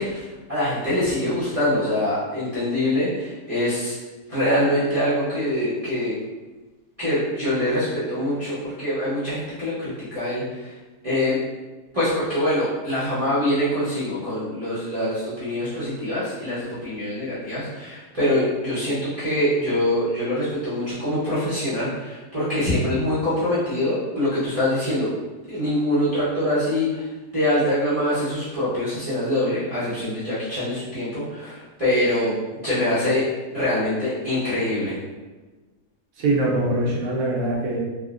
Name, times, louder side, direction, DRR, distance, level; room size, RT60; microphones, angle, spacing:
voice 1, 0.0-4.0 4.3-6.1 7.0-10.7 11.0-11.4 11.9-25.1 25.5-33.3 33.5-35.0, left 1 dB, 35° right, -11 dB, 0.6 m, -24 dB
voice 2, 36.2-37.8, right 2 dB, 70° right, -3 dB, 1.0 m, -23 dB
3.5 x 2.0 x 2.4 m, 1.2 s
omnidirectional pair, 1.7 m